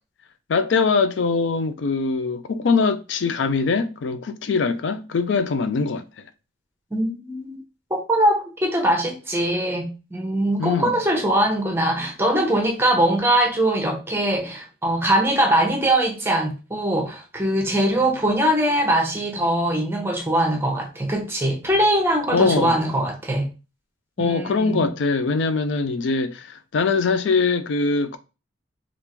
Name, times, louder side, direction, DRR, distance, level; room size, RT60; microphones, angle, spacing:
voice 1, 0.5-6.0 10.6-11.0 22.3-22.8 24.2-28.2, left 4 dB, 65° left, 0.4 m, -22 dB
voice 2, 6.9-7.6 7.9-23.5 24.2-24.9, right 1 dB, 10° right, 0.7 m, -22 dB
3.5 x 2.5 x 2.9 m
head